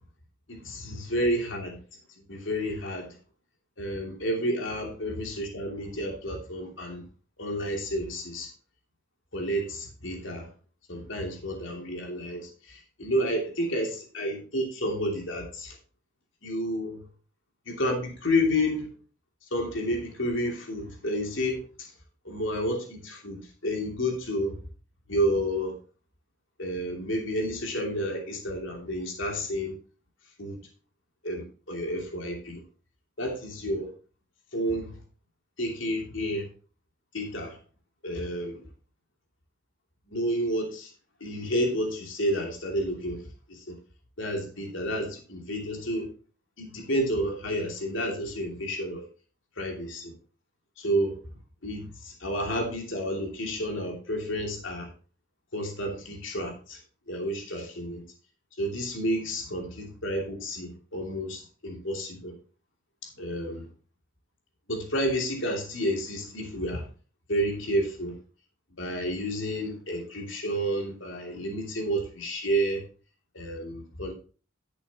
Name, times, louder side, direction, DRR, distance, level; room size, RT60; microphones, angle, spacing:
voice 1, 0.5-1.8 2.3-3.2 3.8-7.0 7.4-8.5 9.3-10.5 10.9-15.8 16.4-17.0 17.7-18.9 19.5-21.9 22.2-24.6 25.1-25.8 26.6-29.7 30.4-30.6 31.2-32.6 33.2-33.9 34.5-35.0 35.6-36.5 37.1-37.6 38.0-38.6 40.1-40.9 41.2-43.2 43.5-43.8 44.2-46.1 46.6-49.0 49.6-50.1 50.8-51.2 51.6-54.9 55.5-56.8 57.1-58.0 58.6-62.4 63.2-63.7 64.7-66.9 67.3-68.1 68.8-72.8 73.3-74.1, equal, 70° left, 1 dB, 2.8 m, -30 dB
11.0 x 8.2 x 3.0 m, 0.36 s
head